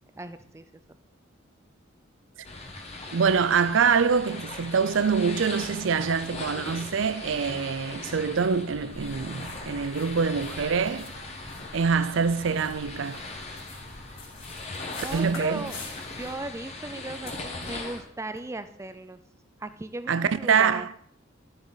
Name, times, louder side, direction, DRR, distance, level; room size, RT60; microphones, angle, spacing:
voice 1, 0.1-0.6 14.7-15.8 16.1-19.2 19.6-20.9, right 2 dB, 15° right, 0.4 m, -37 dB
sound 1, 2.4-18.0, left 2 dB, 30° left, 1.3 m, -40 dB
voice 2, 3.1-11.1 11.7-13.2 15.1-15.7 20.1-20.9, right 6 dB, 70° right, 0.5 m, -25 dB
sound 2, 8.9-16.3, left 2 dB, 50° left, 4.4 m, -46 dB
sound 3, 11.1-18.5, left 3 dB, 75° left, 2.1 m, -51 dB
12.5 x 7.9 x 4.1 m
head